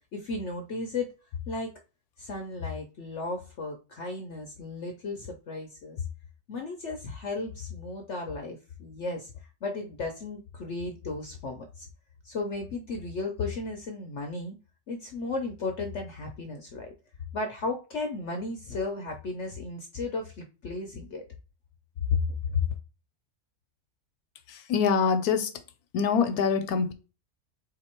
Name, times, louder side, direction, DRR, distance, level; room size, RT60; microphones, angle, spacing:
voice 1, 0.1-1.1 1.5-1.7 2.2-6.0 6.5-11.9 12.2-14.6 14.9-16.9 17.3-21.2 22.1-22.7, left 3 dB, 60° left, 0.8 m, -34 dB
voice 2, 24.5-25.6 25.9-26.9, left 6 dB, 80° left, 1.1 m, -25 dB
3.7 x 2.9 x 4.3 m
omnidirectional pair, 1.6 m